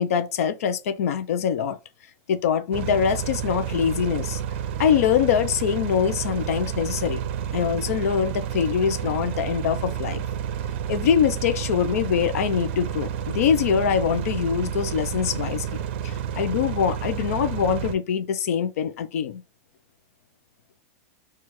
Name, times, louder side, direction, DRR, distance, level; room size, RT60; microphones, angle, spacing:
voice 1, 0.0-1.8 2.3-4.4 4.8-7.2 7.5-10.2 10.9-15.7 16.0-19.4, left 8 dB, 70° left, 0.7 m, -23 dB
sound 1, 2.7-17.9, right 8 dB, 50° right, 0.5 m, -30 dB
4.4 x 2.4 x 4.6 m
supercardioid pair, 175°, 8 cm